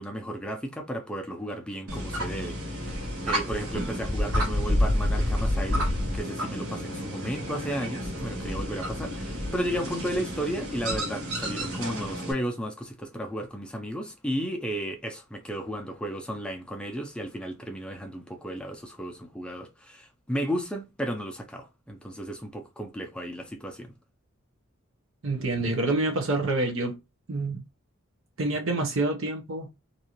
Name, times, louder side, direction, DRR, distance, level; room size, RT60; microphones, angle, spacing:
voice 1, 0.0-23.9, equal, 5° left, 0.5 m, -34 dB
sound 1, 1.9-12.3, equal, 80° right, 1.1 m, -29 dB
voice 2, 25.2-27.0 27.3-27.6 28.4-29.7, right 2 dB, 65° right, 0.7 m, -27 dB
2.6 x 2.4 x 2.8 m
head